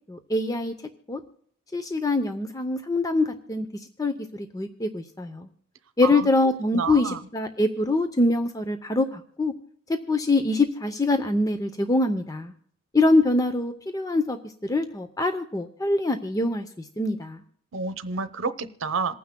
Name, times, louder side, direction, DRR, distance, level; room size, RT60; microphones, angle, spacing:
voice 1, 0.1-0.7 1.1-1.2 1.7-3.7 4.0-5.5 6.0-9.5 9.9-12.5 12.9-14.4 14.6-16.7 17.0-17.4, left 2 dB, 20° left, 8 dB, 0.6 m, -24 dB
voice 2, 6.7-7.2 17.7-19.2, right 4 dB, 85° right, 11 dB, 0.8 m, -29 dB
27.5 x 9.4 x 2.2 m, 0.66 s
head